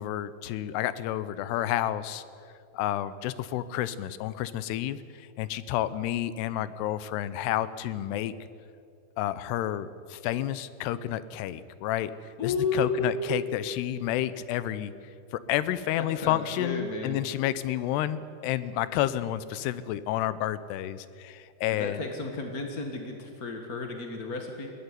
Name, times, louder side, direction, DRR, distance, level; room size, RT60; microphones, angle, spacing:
voice 1, 0.0-2.2 2.7-8.3 9.2-12.1 12.4-14.9 15.3-22.0, left 12 dB, 85° left, 15 dB, 2.9 m, -30 dB
voice 2, 12.4-13.1 16.0-17.2 21.7-24.7, left 4 dB, 60° left, 3 dB, 0.9 m, -32 dB
21.5 x 16.5 x 9.6 m, 2.4 s
omnidirectional pair, 4.7 m